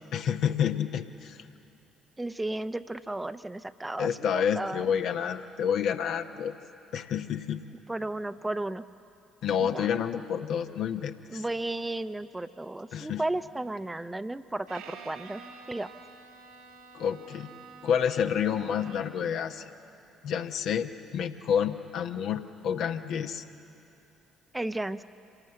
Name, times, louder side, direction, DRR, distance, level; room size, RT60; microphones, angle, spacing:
voice 1, 0.1-1.5 4.0-6.5 6.9-7.6 9.4-11.4 12.9-13.2 16.9-17.5 17.8-19.6 20.2-23.4, left 8 dB, 60° left, 6 dB, 1.0 m, -29 dB
voice 2, 2.2-4.9 7.9-8.8 9.6-9.9 11.3-15.9 24.5-25.0, right 2 dB, 15° right, 12 dB, 0.7 m, -34 dB
Bowed string instrument, 14.7-19.3, right 4 dB, 70° right, 2.7 m, -48 dB
25.5 x 18.0 x 7.9 m, 2.8 s
figure-of-eight pair, 50°, 0 cm